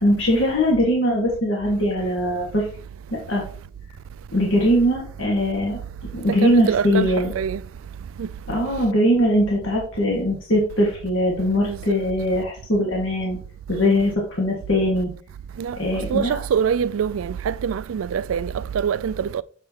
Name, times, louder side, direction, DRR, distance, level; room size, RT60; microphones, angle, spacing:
voice 1, 0.0-2.7 3.3-3.4 4.3-5.8 6.1-7.3 8.5-13.4 13.7-15.1 15.7-16.4, equal, 70° left, 1.7 m, -21 dB
voice 2, 6.4-7.1 7.4-7.6 8.2-8.3 11.6-11.8 15.6-15.8 16.1-19.4, right 7 dB, 85° right, 0.3 m, -24 dB
6.6 x 6.5 x 2.9 m
head